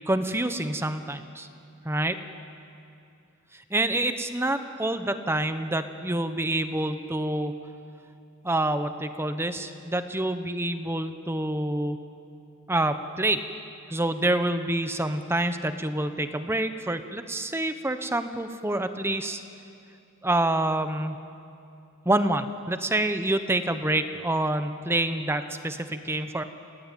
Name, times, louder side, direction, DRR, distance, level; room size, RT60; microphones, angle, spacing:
voice 1, 0.1-1.5 1.8-2.2 3.5-7.6 8.4-12.0 12.7-13.4 13.9-19.4 20.2-21.2 22.0-26.4, right 1 dB, 10° right, 9 dB, 1.0 m, -27 dB
29.0 x 18.0 x 9.2 m, 2.6 s
head